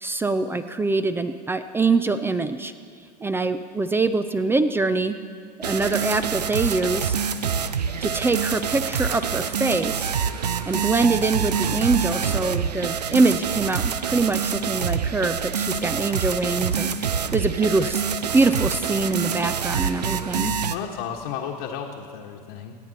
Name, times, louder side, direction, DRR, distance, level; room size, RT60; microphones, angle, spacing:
voice 1, 0.0-2.7 3.2-5.2 5.6-7.2 8.0-10.1 10.7-18.0 18.3-20.5, right 3 dB, 10° right, 11 dB, 0.5 m, -24 dB
sound 1, 5.6-20.8, right 7 dB, 75° right, 0.6 m, -26 dB
voice 2, 20.7-22.8, left 8 dB, 50° left, -2 dB, 1.3 m, -33 dB
27.0 x 9.3 x 4.1 m, 2.2 s
figure-of-eight pair, 80°, 21 cm